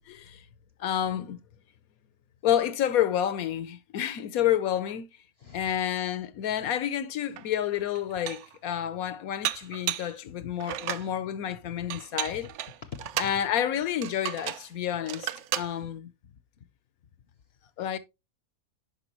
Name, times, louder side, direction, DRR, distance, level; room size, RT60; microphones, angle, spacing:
voice 1, 0.1-0.4 0.8-1.4 2.4-5.1 5.5-12.5 13.2-15.3 15.5-16.1 17.8-18.0, left 10 dB, 80° left, 1.2 m, -29 dB
voice 2, 5.4-5.7 10.3-10.5 11.8-12.5 12.8-13.3 15.8-15.9 16.2-16.6, left 7 dB, 55° left, 0.8 m, -46 dB
Dishes pots and pans, 7.4-7.5 8.0-8.6 9.4-10.2 10.6-11.1 11.9-13.4 14.0-14.7 15.1-15.7, right 12 dB, 65° right, 0.8 m, -33 dB
10.5 x 4.8 x 3.0 m
omnidirectional pair, 1.5 m